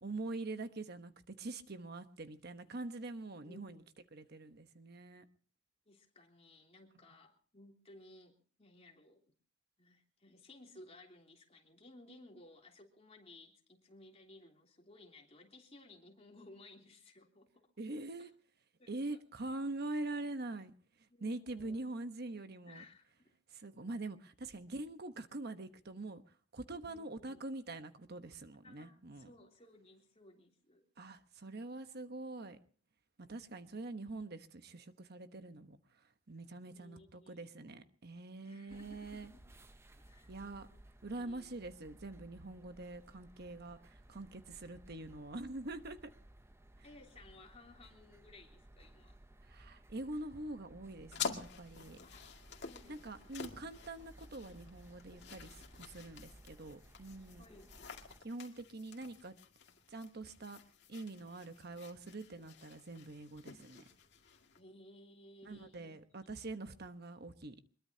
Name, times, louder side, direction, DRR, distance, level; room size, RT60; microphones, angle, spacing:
voice 1, 0.0-3.8 4.1-5.2 17.8-18.3 18.9-22.8 23.5-26.2 26.5-29.3 31.0-32.6 33.2-39.3 40.3-40.7 41.0-46.1 49.4-52.0 52.9-57.4 58.2-59.3 59.9-60.6 60.9-63.8 65.4-67.6, right 2 dB, 55° right, 1.1 m, -44 dB
voice 2, 3.4-3.8 5.9-9.2 9.8-17.7 18.2-18.3 18.8-19.2 21.1-21.8 22.7-23.3 26.9-27.4 28.6-30.9 36.7-37.5 38.4-39.4 40.0-40.3 40.7-40.8 41.2-41.6 46.8-49.2 52.0-52.3 52.6-53.4 57.4-57.8 64.5-66.0, left 2 dB, 35° left, 3.2 m, -59 dB
sound 1, 38.7-58.2, right 1 dB, 15° right, 0.7 m, -59 dB
sound 2, 51.1-64.6, left 6 dB, 60° left, 2.2 m, -49 dB
23.5 x 22.0 x 2.8 m
head